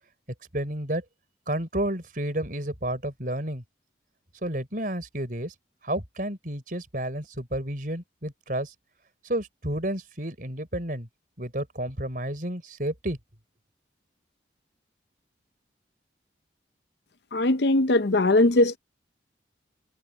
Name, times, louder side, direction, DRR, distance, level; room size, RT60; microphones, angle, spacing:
voice 1, 0.5-1.0 1.5-3.6 4.4-5.5 5.8-8.7 9.2-11.1 11.4-13.2, right 1 dB, 45° right, 4.6 m, -31 dB
voice 2, 17.3-18.8, left 2 dB, 65° left, 0.7 m, -20 dB
head